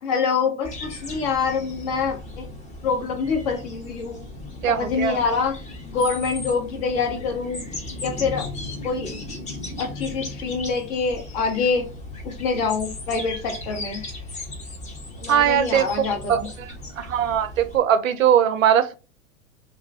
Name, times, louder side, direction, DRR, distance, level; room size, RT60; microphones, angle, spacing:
voice 1, 0.0-2.5 2.8-4.2 4.7-5.6 5.8-7.6 8.0-8.5 8.8-9.2 9.8-11.9 12.2-14.0 15.2-16.5, left 5 dB, 45° left, 1.0 m, -25 dB
sound 1, 0.6-17.8, left 2 dB, 20° left, 0.7 m, -36 dB
voice 2, 4.6-5.2 15.3-16.4 17.0-18.9, right 9 dB, 80° right, 0.5 m, -20 dB
2.3 x 2.2 x 3.8 m
figure-of-eight pair, 90°, 40 cm